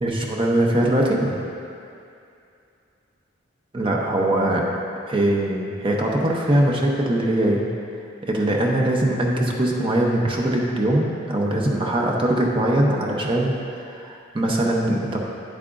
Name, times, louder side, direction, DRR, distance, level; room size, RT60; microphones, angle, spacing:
voice 1, 0.0-1.3 3.7-4.6 5.1-7.7 8.2-13.5 13.8-15.2, right 1 dB, 25° right, -2 dB, 0.7 m, -21 dB
9.1 x 8.4 x 2.6 m, 2.6 s
head